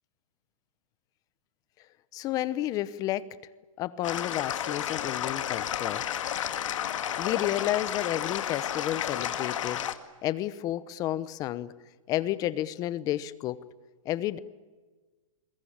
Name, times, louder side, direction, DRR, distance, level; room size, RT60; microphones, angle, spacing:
voice 1, 2.1-3.3 3.8-6.0 7.2-9.8 10.2-11.7 12.1-13.6 14.0-14.4, left 13 dB, 20° left, 17 dB, 0.9 m, -31 dB
sound 1, 4.0-9.9, left 10 dB, 65° left, 2.1 m, -32 dB
28.5 x 22.0 x 8.9 m, 1.3 s
hypercardioid pair, 165°, 17 cm